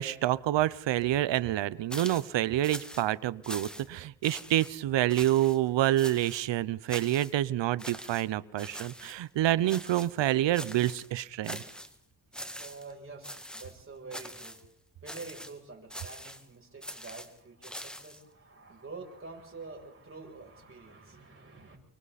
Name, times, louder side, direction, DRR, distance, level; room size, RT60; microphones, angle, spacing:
voice 1, 0.0-11.6, right 14 dB, 85° right, 18 dB, 0.9 m, -28 dB
sound 1, 1.9-2.3 2.6-3.1 3.4-4.0 4.2-4.7 5.1-5.6 6.0-6.5 6.9-7.3 7.8-8.3 8.6-9.2 9.7-10.2 10.5-11.1 11.4-12.0 12.3-12.9 13.2-13.8 14.1-14.6 15.1-15.6 15.9-16.5 16.8-18.2, equal, ahead, 1.9 m, -43 dB
voice 2, 12.6-14.6 15.0-21.8, right 3 dB, 30° right, 0 dB, 7.9 m, -47 dB
29.5 x 24.5 x 4.2 m, 0.67 s
cardioid pair, 100°, 42 cm